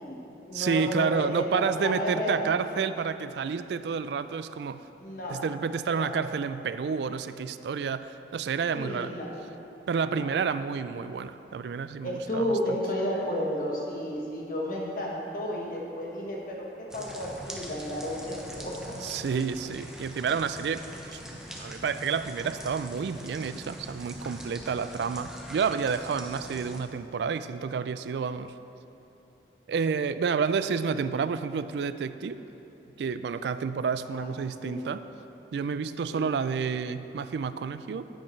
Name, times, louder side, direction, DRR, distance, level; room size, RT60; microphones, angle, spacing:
voice 1, 0.0-2.5 5.0-5.4 5.9-6.1 8.7-9.3 10.1-10.3 12.0-19.0 34.2-34.3 34.6-34.9 36.1-36.2, equal, 50° left, -2 dB, 1.3 m, -32 dB
voice 2, 0.5-4.8 5.3-9.1 9.9-12.8 19.0-21.2 21.6-28.5 29.7-32.4 33.0-35.0 35.5-38.1, right 6 dB, 70° right, 13 dB, 0.3 m, -30 dB
sound 1, 16.9-26.8, equal, 5° right, 0.7 m, -43 dB
10.0 x 8.8 x 3.2 m, 3.0 s
head